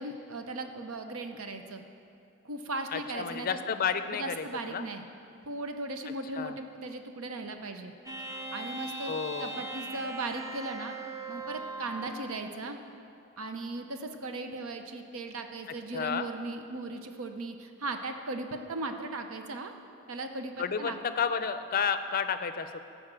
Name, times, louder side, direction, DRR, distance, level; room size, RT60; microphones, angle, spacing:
voice 1, 0.0-1.8 2.4-3.6 4.1-5.0 5.4-7.9 8.5-11.0 11.3-12.8 13.4-19.7 20.1-21.0, right 2 dB, 75° right, 6 dB, 0.8 m, -37 dB
voice 2, 2.9-4.8 6.3-6.6 9.1-9.6 15.9-16.3 20.6-22.8, left 6 dB, 45° left, 10 dB, 0.5 m, -31 dB
sound 1, 8.1-12.3, right 2 dB, 15° right, 0.7 m, -39 dB
12.5 x 5.1 x 7.4 m, 2.5 s
head